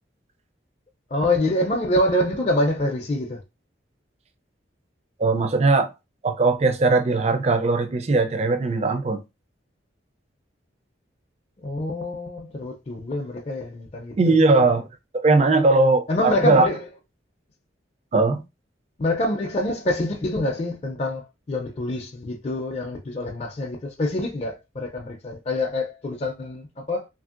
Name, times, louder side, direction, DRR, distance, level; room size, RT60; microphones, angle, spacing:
voice 1, 1.1-3.4 11.6-14.4 16.1-16.8 19.0-27.1, left 1 dB, 35° left, 0.4 m, -26 dB
voice 2, 5.2-5.9 6.2-9.2 14.2-14.9 15.1-16.7 18.1-18.4, right 3 dB, 35° right, 0.4 m, -19 dB
3.1 x 2.6 x 2.4 m
head